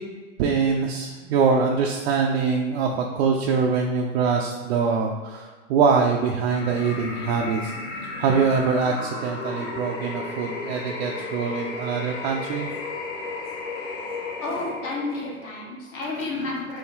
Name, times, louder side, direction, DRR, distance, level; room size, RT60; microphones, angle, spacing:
voice 1, 0.4-7.7 8.2-12.7, right 5 dB, 55° right, 0 dB, 0.5 m, -23 dB
sound 1, 6.5-15.5, left 3 dB, 75° left, 1.0 m, -34 dB
voice 2, 14.4-16.8, left 2 dB, 35° left, -2 dB, 1.3 m, -31 dB
4.4 x 2.8 x 3.5 m, 1.4 s
hypercardioid pair, 125°, 39 cm